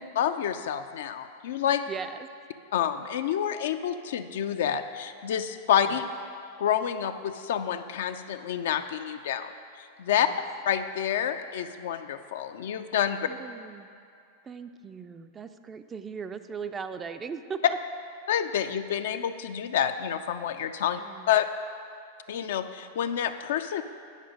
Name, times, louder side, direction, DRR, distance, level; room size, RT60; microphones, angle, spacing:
voice 1, 0.2-1.8 2.7-6.0 6.6-9.5 10.0-10.3 10.7-13.3 18.3-21.0 21.3-21.5 22.3-23.8, left 9 dB, 65° left, 9 dB, 0.3 m, -28 dB
voice 2, 1.9-2.3 10.2-10.4 13.3-13.9 14.4-17.8 21.0-21.3, right 6 dB, 20° right, 9 dB, 0.3 m, -38 dB
8.9 x 5.1 x 5.1 m, 2.4 s
figure-of-eight pair, 95°, 0 cm